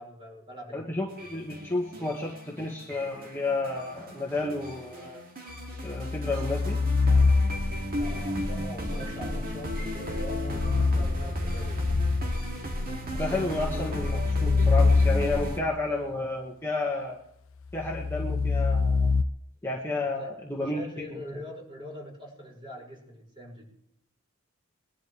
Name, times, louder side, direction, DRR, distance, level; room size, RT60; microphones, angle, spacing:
voice 1, 0.0-1.0 8.0-11.8 20.0-20.3 20.6-23.7, equal, 25° right, -3 dB, 6.1 m, -43 dB
voice 2, 0.7-5.2 5.8-6.8 13.1-17.2 17.7-19.1 19.6-20.8 21.1-21.2, left 2 dB, 10° left, -3 dB, 1.8 m, -31 dB
sound 1, 1.1-15.6, equal, 45° right, 2.5 m, -34 dB
sound 2, 5.6-7.9 10.0-12.6 13.2-15.7 17.7-19.2, left 4 dB, 65° left, 0.5 m, -25 dB
22.0 x 12.0 x 3.4 m, 0.74 s
head